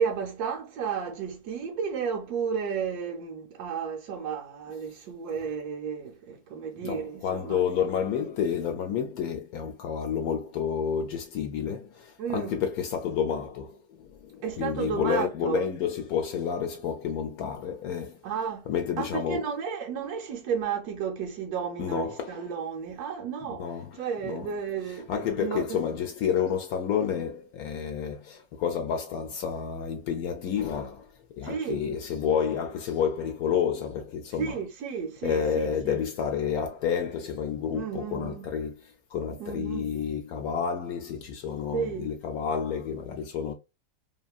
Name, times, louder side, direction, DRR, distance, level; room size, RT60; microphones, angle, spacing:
voice 1, 0.0-7.6 12.2-12.6 14.4-15.7 18.2-18.6 19.0-25.8 31.4-31.8 34.4-36.0 37.7-38.5 39.4-39.9 41.7-42.1, right 6 dB, 75° right, 1.1 m, -32 dB
voice 2, 6.8-18.2 18.7-19.5 21.8-22.4 23.6-24.5 24.9-31.1 31.4-34.6 35.2-38.7 39.1-43.5, left 7 dB, 75° left, 1.0 m, -30 dB
2.9 x 2.5 x 2.3 m
omnidirectional pair, 1.7 m